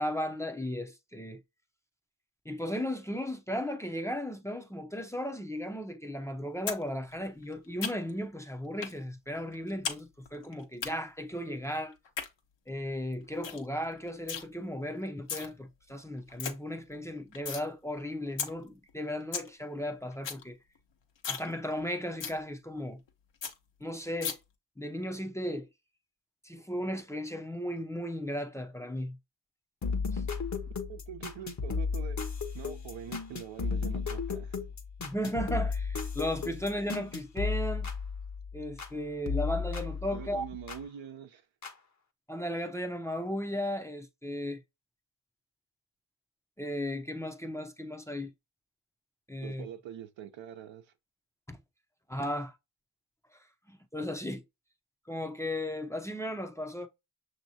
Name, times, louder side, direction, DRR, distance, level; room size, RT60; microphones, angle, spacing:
voice 1, 0.0-1.4 2.4-12.0 12.7-20.6 21.3-23.0 23.8-24.4 24.8-25.7 26.4-29.2 30.1-30.2 35.0-37.9 38.5-40.4 42.3-44.6 46.6-48.3 49.3-49.6 51.5-51.6 52.1-52.5 53.7-54.4 55.1-56.9, equal, 5° left, 0.7 m, -35 dB
sound 1, 6.7-6.8 7.1-8.2 8.8-9.0 9.3-10.0 10.3-10.9 11.9-12.3 12.7-12.8 13.1-13.2 13.4-13.6 13.9-14.4 15.1-15.5 15.9-16.0 16.2-16.5 16.9-17.6 18.0-18.1 18.4-18.5 18.9-19.0 19.2-19.5 19.8-19.9 20.1-20.4 20.8-20.9 21.2-21.5 21.8-21.9 22.2-22.4 22.8-22.9 23.1-23.2 23.4-23.5 24.2-24.3, left 7 dB, 65° left, 1.2 m, -35 dB
sound 2, 29.8-39.0 39.3-40.8 41.6-41.7, left 5 dB, 35° left, 1.0 m, -34 dB
voice 2, 30.9-32.2 32.5-34.6 40.1-41.5 49.4-50.9, right 9 dB, 70° right, 0.9 m, -44 dB
6.0 x 2.9 x 2.8 m
supercardioid pair, 50°, 47 cm